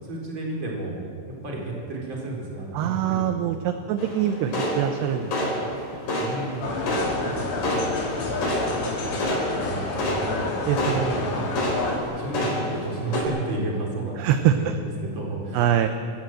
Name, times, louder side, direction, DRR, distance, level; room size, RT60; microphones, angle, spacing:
voice 1, 0.0-3.8 6.1-8.4 9.6-11.5 12.0-15.9, right 2 dB, 25° right, -2 dB, 4.6 m, -33 dB
voice 2, 2.7-5.7 8.8-9.3 10.7-11.2 14.2-14.8 15.5-15.9, right 10 dB, 75° right, 8 dB, 2.6 m, -24 dB
sound 1, 4.0-13.2, left 1 dB, 45° left, 5.8 m, -29 dB
sound 2, 6.6-12.0, left 3 dB, 75° left, 5.8 m, -29 dB
26.5 x 14.5 x 7.8 m, 2.5 s
omnidirectional pair, 5.6 m